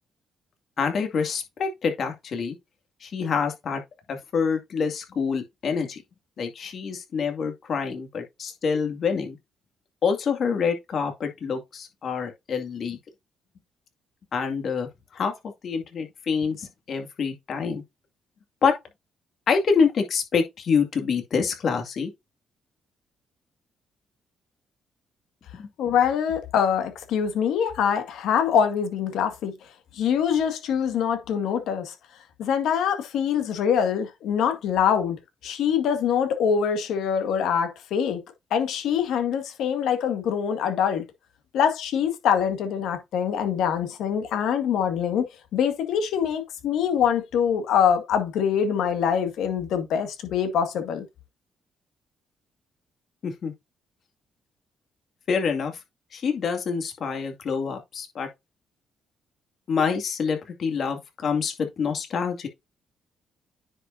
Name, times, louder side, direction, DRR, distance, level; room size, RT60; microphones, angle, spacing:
voice 1, 0.8-2.6 3.0-3.8 4.1-6.0 6.4-9.4 10.0-13.0 14.3-14.9 15.1-15.3 15.6-17.8 18.6-18.7 19.5-22.1 25.5-25.7 53.2-53.5 55.3-55.7 56.1-58.3 59.7-62.5, left 5 dB, 55° left, 2.2 m, -26 dB
voice 2, 25.8-29.5 29.9-31.9 32.4-35.2 35.4-38.2 38.5-41.0 41.5-45.2 45.5-51.1, left 8 dB, 80° left, 1.9 m, -24 dB
9.7 x 5.2 x 2.7 m
cardioid pair, 90°, 0 cm